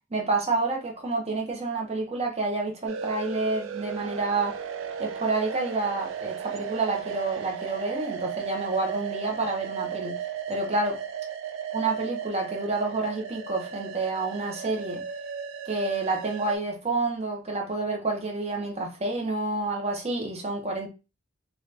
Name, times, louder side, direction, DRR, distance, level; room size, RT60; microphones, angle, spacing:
voice 1, 0.1-4.5 5.0-10.2 10.5-11.0 11.7-15.0 15.7-20.9, right 3 dB, 35° right, 0.8 m, -29 dB
sound 1, 2.9-16.6, right 7 dB, 75° right, 0.4 m, -36 dB
2.9 x 2.4 x 3.3 m
head